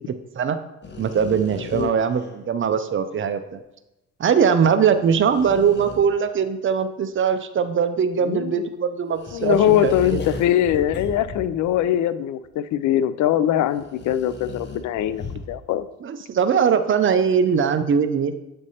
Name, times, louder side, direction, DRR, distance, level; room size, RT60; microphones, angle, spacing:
voice 1, 0.1-0.6 1.0-3.6 4.2-10.2 16.0-18.4, right 7 dB, 40° right, 10 dB, 0.6 m, -21 dB
sound 1, 0.8-2.5 4.8-6.3 9.1-11.9 12.4-12.5 13.7-15.7, left 3 dB, 35° left, 0.9 m, -36 dB
voice 2, 8.2-8.7 9.3-15.9, left 11 dB, 70° left, 14 dB, 0.5 m, -22 dB
8.5 x 3.3 x 4.1 m, 0.95 s
cardioid pair, 90°, 30 cm